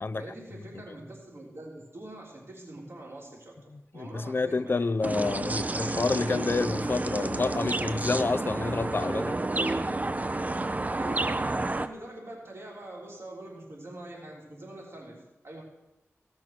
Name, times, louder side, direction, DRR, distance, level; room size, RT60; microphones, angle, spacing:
voice 1, 0.2-4.9 10.9-15.6, right 1 dB, 55° right, 3.4 m, -44 dB
voice 2, 3.7-9.4, left 3 dB, 50° left, 0.5 m, -29 dB
sound 1, 5.0-11.9, right 2 dB, 30° right, 0.6 m, -30 dB
16.5 x 6.1 x 5.9 m
wide cardioid pair, 65°, 5 cm